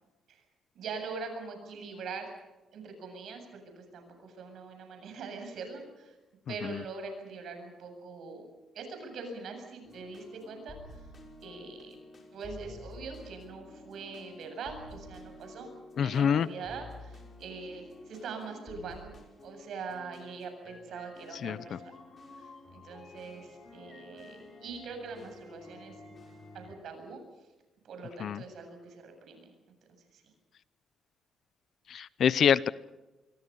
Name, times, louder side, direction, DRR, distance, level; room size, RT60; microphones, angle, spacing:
voice 1, 0.7-2.3 2.7-6.1 6.5-8.5 8.7-11.1 11.4-12.0 12.3-15.7 16.0-19.1 19.4-22.0 22.4-26.0 26.5-27.5 27.8-29.7 30.1-30.2, right 4 dB, 70° right, 5 dB, 7.8 m, -43 dB
sound 1, 9.8-26.8, left 2 dB, 40° left, 5.6 m, -51 dB
voice 2, 16.0-16.5 21.4-21.6 28.2-28.4 31.9-32.7, left 8 dB, 60° left, 18 dB, 0.8 m, -25 dB
26.5 x 23.0 x 5.6 m, 1.1 s
cardioid pair, 90°, 0 cm